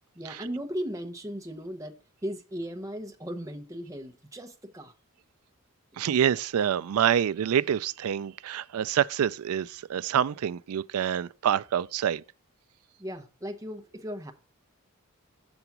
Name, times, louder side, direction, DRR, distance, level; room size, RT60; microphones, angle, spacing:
voice 1, 0.2-1.9 2.2-4.9 13.0-14.3, equal, 15° right, 0.8 m, -37 dB
voice 2, 6.0-12.2, right 9 dB, 75° right, 0.3 m, -27 dB
7.1 x 3.9 x 5.9 m
head